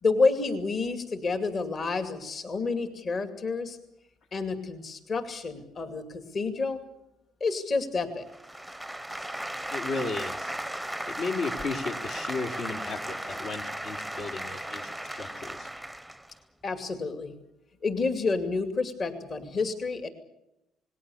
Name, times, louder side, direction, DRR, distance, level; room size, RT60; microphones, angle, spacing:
voice 1, 0.0-3.8 4.3-6.8 7.4-8.3 16.6-17.3 17.8-20.1, left 4 dB, 40° left, 7 dB, 2.5 m, -29 dB
sound 1, 8.3-16.3, right 1 dB, ahead, 0.8 m, -36 dB
voice 2, 9.7-10.6 11.1-15.7, left 3 dB, 65° left, 4 dB, 3.0 m, -34 dB
28.5 x 19.5 x 7.1 m, 0.87 s
cardioid pair, 110°, 0 cm